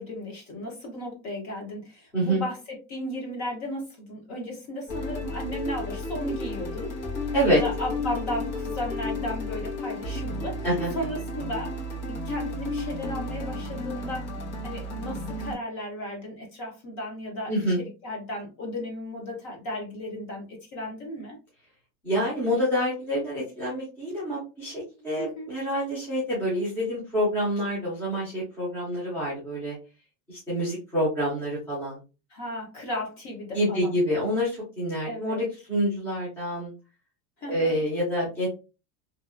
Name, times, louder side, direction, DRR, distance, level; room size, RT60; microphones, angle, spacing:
voice 1, 0.0-6.9 7.4-10.6 10.9-11.7 12.1-14.3 14.6-20.4 20.7-21.4 25.2-25.5 32.3-34.0 35.1-35.4 37.4-37.8, left 1 dB, 35° left, 0 dB, 0.8 m, -35 dB
sound 1, 4.9-15.5, left 2 dB, 70° left, 1.3 m, -33 dB
voice 2, 17.5-17.8 22.0-29.8 30.3-32.0 33.5-36.7 37.5-38.5, equal, 5° left, -8 dB, 0.5 m, -27 dB
2.7 x 2.4 x 2.4 m, 0.30 s
supercardioid pair, 180°, 43 cm